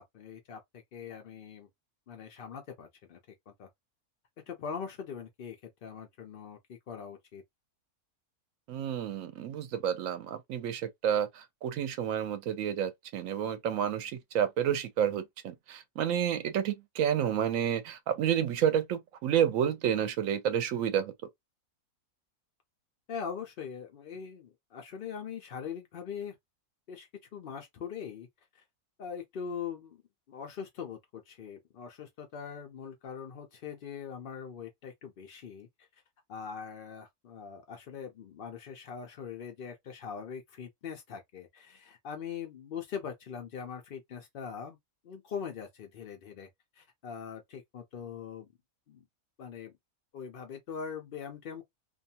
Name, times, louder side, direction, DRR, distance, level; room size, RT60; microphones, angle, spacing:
voice 1, 0.0-1.7 2.1-3.2 3.5-3.7 4.5-5.6 5.8-7.4 23.1-26.3 26.9-28.3 28.5-28.6 29.0-30.0 30.3-35.9 36.3-44.8 45.0-46.5 46.8-48.5 48.9-49.0 49.4-49.7 50.1-51.6, left 7 dB, 70° left, 0.5 m, -42 dB
voice 2, 8.7-21.1, right 9 dB, 70° right, 0.9 m, -30 dB
2.6 x 2.3 x 2.7 m
omnidirectional pair, 1.6 m